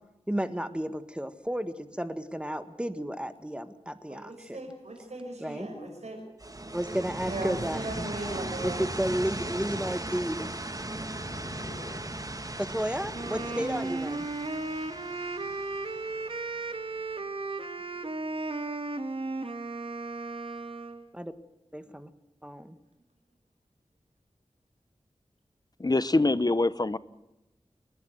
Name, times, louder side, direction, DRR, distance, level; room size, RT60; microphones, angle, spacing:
voice 1, 0.3-4.6 5.4-5.7 6.7-8.1 8.6-10.5 12.6-14.3 21.1-21.3 21.7-22.1 22.4-22.8, equal, 10° right, 10 dB, 1.6 m, -32 dB
voice 2, 4.1-6.2 7.2-8.9, right 2 dB, 75° right, 1 dB, 6.1 m, -38 dB
sound 1, 6.4-17.1, right 2 dB, 30° right, 1.6 m, -38 dB
Purr, 8.9-14.5, left 1 dB, 75° left, 6.1 m, -46 dB
Wind instrument woodwind instrument, 13.1-21.1, right 3 dB, 50° right, 1.6 m, -35 dB
voice 3, 25.8-27.0, left 2 dB, 35° left, 16 dB, 0.9 m, -24 dB
28.5 x 11.0 x 9.2 m, 0.94 s
wide cardioid pair, 45°, 12 cm